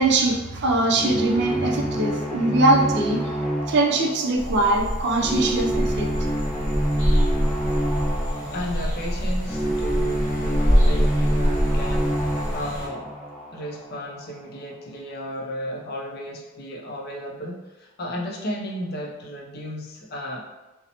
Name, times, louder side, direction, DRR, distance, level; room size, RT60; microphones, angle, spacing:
voice 1, 0.0-3.2 3.7-6.1, right 2 dB, 50° right, 0 dB, 0.4 m, -21 dB
sound 1, 0.9-14.0, right 1 dB, 5° left, 0.7 m, -28 dB
sound 2, 4.3-12.9, equal, 15° right, 1.1 m, -24 dB
voice 2, 8.5-13.1 13.5-20.4, equal, 45° left, -2 dB, 0.4 m, -34 dB
2.7 x 2.0 x 2.7 m, 1.0 s
head